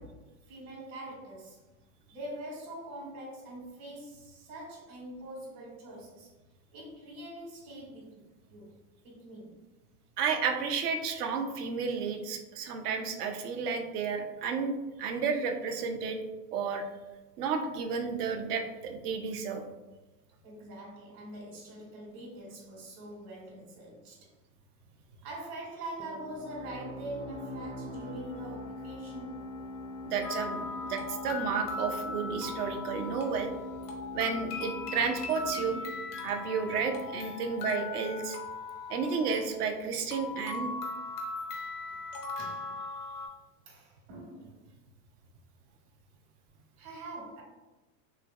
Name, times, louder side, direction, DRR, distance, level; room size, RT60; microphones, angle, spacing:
voice 1, 0.0-1.6 2.1-6.3 6.7-8.8 9.0-9.6 20.4-24.3 25.2-29.6 32.3-32.7 42.4-42.8 43.6-44.6 46.8-47.4, right 1 dB, 60° right, -5 dB, 1.4 m, -44 dB
voice 2, 10.2-16.2 16.5-16.8 17.4-19.6 30.1-33.5 34.1-35.8 36.2-38.4 38.9-40.7, right 5 dB, 75° right, 5 dB, 0.7 m, -32 dB
sound 1, 26.0-37.4, left 1 dB, 10° left, 0.3 m, -43 dB
sound 2, 30.2-43.3, left 4 dB, 80° left, 0.9 m, -39 dB
3.3 x 3.0 x 2.4 m, 1.1 s
hypercardioid pair, 90°, 46 cm